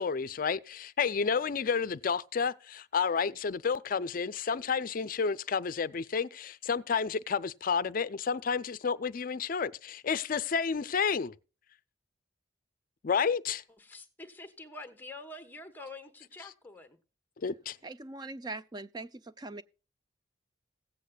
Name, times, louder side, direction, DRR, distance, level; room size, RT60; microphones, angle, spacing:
voice 1, 0.0-11.3 13.0-13.6 17.4-17.8, left 6 dB, 50° left, 0.5 m, -30 dB
voice 2, 13.8-17.0, left 2 dB, 10° left, 1.1 m, -46 dB
voice 3, 17.8-19.6, right 2 dB, 25° right, 0.5 m, -41 dB
17.0 x 8.4 x 2.3 m
head